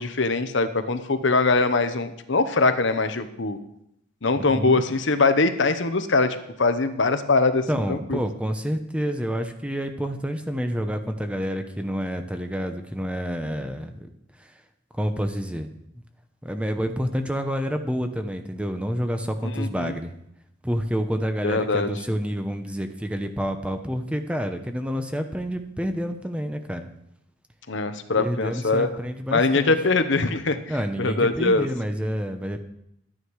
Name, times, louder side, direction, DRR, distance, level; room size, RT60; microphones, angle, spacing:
voice 1, 0.0-3.6 4.2-8.2 19.6-19.9 21.4-21.9 27.7-28.9 29.3-30.6 31.0-31.7, left 3 dB, 65° left, 9 dB, 1.0 m, -22 dB
voice 2, 4.5-4.8 7.7-14.1 14.4-14.5 14.9-15.7 16.4-20.1 20.6-26.9 28.1-29.7 30.7-32.6, equal, 5° right, 7 dB, 0.9 m, -28 dB
13.0 x 9.8 x 4.8 m, 0.78 s
head